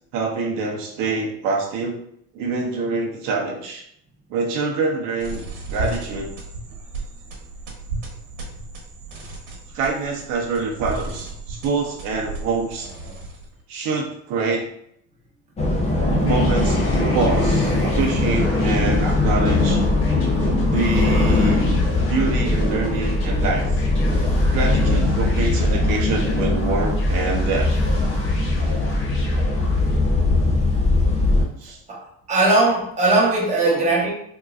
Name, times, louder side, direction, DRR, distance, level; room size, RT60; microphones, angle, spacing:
voice 1, 0.1-2.0 2.3-3.8 4.3-6.3 9.7-12.9 13.7-14.7 16.0-19.8 20.7-21.6 22.1-23.7 24.5-27.7 31.6-31.8 33.6-33.9, right 4 dB, 70° right, -1 dB, 0.8 m, -25 dB
sound 1, 5.2-13.6, right 3 dB, 90° right, 1.2 m, -34 dB
sound 2, 15.6-31.4, left 2 dB, 20° left, 0.7 m, -20 dB
sound 3, 16.2-30.1, equal, 35° left, 1.1 m, -38 dB
voice 2, 31.9-34.1, right 2 dB, 20° right, -4 dB, 1.0 m, -19 dB
3.6 x 2.9 x 2.4 m, 0.71 s
cardioid pair, 135°, 35 cm